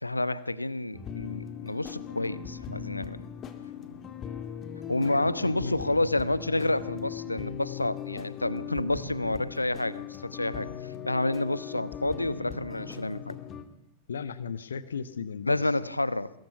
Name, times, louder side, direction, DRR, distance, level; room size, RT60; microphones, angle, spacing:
voice 1, 0.0-3.2 4.9-10.7 11.0-13.3 15.5-16.3, left 2 dB, 85° left, 17 dB, 1.0 m, -29 dB
sound 1, 0.9-13.6, left 9 dB, 30° left, 2.5 m, -39 dB
sound 2, 1.8-4.2 5.0-7.6 8.4-10.5 12.0-13.7, right 6 dB, 70° right, 1.4 m, -47 dB
voice 2, 5.0-5.8 14.1-15.7, left 6 dB, 70° left, 15 dB, 1.3 m, -36 dB
24.5 x 21.5 x 5.7 m, 0.80 s
figure-of-eight pair, 90°, 0 cm